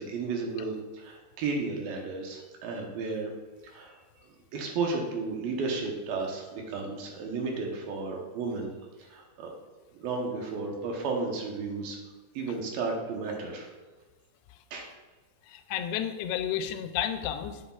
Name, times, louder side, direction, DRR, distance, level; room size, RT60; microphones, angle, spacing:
voice 1, 0.0-3.3 3.6-4.3 4.5-8.7 9.1-9.5 9.9-12.0 12.4-13.7 14.7-14.9, right 4 dB, 70° right, 1 dB, 2.7 m, -33 dB
voice 2, 15.5-17.6, left 10 dB, 90° left, 8 dB, 2.7 m, -31 dB
9.8 x 8.1 x 2.4 m, 1.2 s
omnidirectional pair, 4.6 m